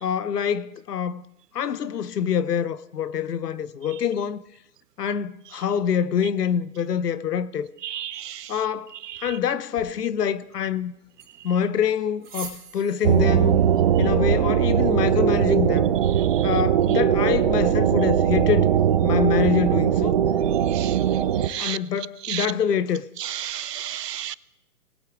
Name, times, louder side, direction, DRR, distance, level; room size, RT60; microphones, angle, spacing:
voice 1, 0.0-1.3 1.5-4.4 5.0-7.7 8.5-8.9 9.2-10.9 11.4-13.6 14.0-15.9 16.4-18.7 19.0-20.2 21.6-23.0, left 8 dB, 75° left, 0.9 m, -25 dB
voice 2, 7.9-8.3 20.8-20.9 21.5-21.8 22.3-22.5 23.5-24.3, right 11 dB, 90° right, 0.6 m, -31 dB
sound 1, 9.7-15.7, right 5 dB, 20° right, 3.1 m, -47 dB
sound 2, 13.0-21.5, right 9 dB, 35° right, 0.5 m, -20 dB
20.5 x 8.4 x 3.5 m
hypercardioid pair, 135°, 47 cm